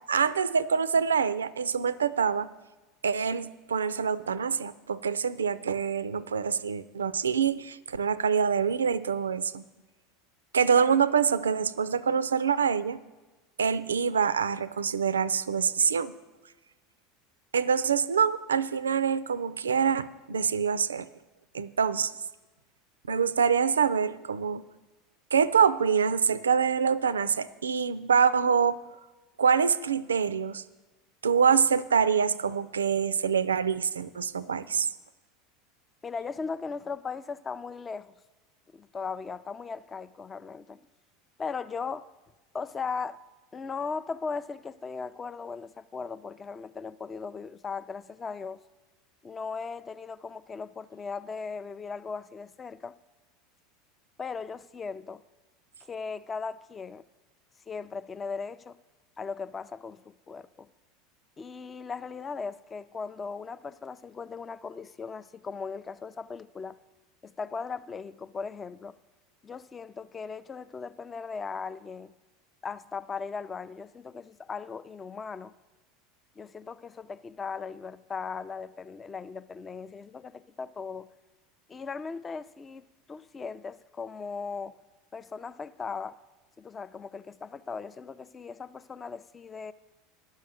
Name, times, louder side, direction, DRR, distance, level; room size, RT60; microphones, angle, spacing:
voice 1, 0.1-2.5 3.0-9.6 10.5-13.0 13.6-16.1 17.5-21.1 21.5-22.1 23.1-24.6 25.3-28.8 29.4-30.6 31.2-34.9, right 6 dB, 75° right, 0.3 m, -25 dB
voice 2, 36.0-38.1 38.7-40.8 41.4-42.1 42.5-43.2 43.5-48.6 49.2-52.9 54.2-55.2 55.8-57.0 57.7-58.8 59.2-60.7 61.4-66.8 67.2-68.9 69.4-72.1 72.6-75.5 76.4-81.1 81.7-84.8 85.1-86.2 86.6-89.7, left 5 dB, 25° left, 0.4 m, -38 dB
10.5 x 6.4 x 7.4 m
figure-of-eight pair, 75°, 0 cm